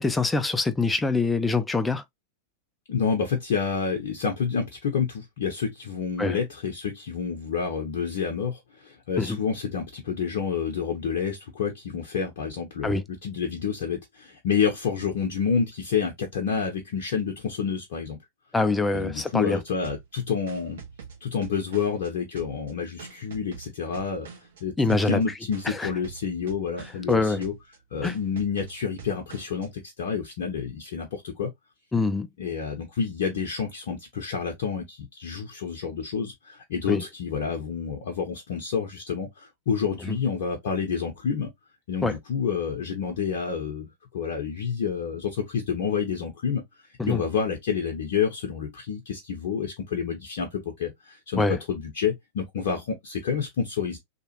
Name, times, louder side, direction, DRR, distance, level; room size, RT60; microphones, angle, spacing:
voice 1, 0.0-2.0 6.2-6.4 9.2-9.4 12.8-13.0 18.5-19.6 24.8-25.2 25.7-25.9 27.1-27.4 28.0-28.2 31.9-32.3 36.9-37.0 40.1-40.2 42.0-42.1 47.0-47.2 51.4-51.6, left 3 dB, 10° left, 0.4 m, -24 dB
voice 2, 2.9-18.2 18.9-20.8 21.2-24.3 24.6-27.5 27.9-31.5 32.4-41.5 41.9-46.6 47.1-54.0, left 6 dB, 55° left, 0.7 m, -29 dB
sound 1, 19.8-22.1 22.4-24.6 24.9-25.2 25.5-27.1 27.4-27.8 28.0-29.7, right 6 dB, 60° right, 0.9 m, -44 dB
2.9 x 2.4 x 2.8 m
figure-of-eight pair, 90°, 0 cm